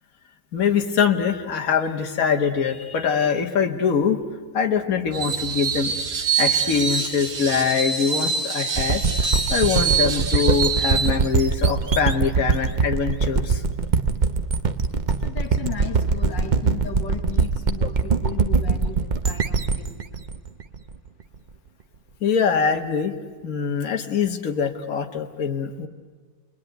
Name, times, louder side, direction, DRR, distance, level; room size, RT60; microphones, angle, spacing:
voice 1, 0.5-4.2 4.5-5.9 6.4-9.0 9.5-13.6 22.2-23.2 23.4-25.9, left 6 dB, 45° left, 4 dB, 1.9 m, -23 dB
Screech, 5.1-11.2, right 6 dB, 75° right, 2.5 m, -25 dB
sound 1, 8.7-21.4, right 4 dB, 60° right, 0.4 m, -23 dB
voice 2, 15.2-20.0, left 9 dB, 65° left, 3 dB, 1.8 m, -36 dB
29.5 x 21.0 x 9.3 m, 1.4 s
omnidirectional pair, 2.1 m